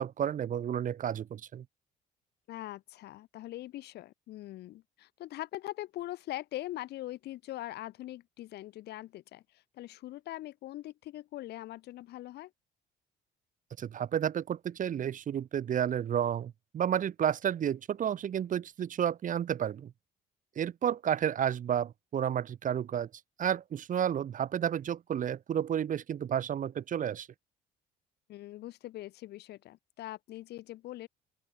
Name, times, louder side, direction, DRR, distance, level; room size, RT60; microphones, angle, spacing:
voice 1, 0.0-1.6 13.8-19.9 20.6-23.1 23.4-27.3, right 9 dB, 50° right, 4.1 m, -31 dB
voice 2, 2.5-12.5 28.3-31.1, left 15 dB, 75° left, 6.7 m, -42 dB
open air
cardioid pair, 110°, 17 cm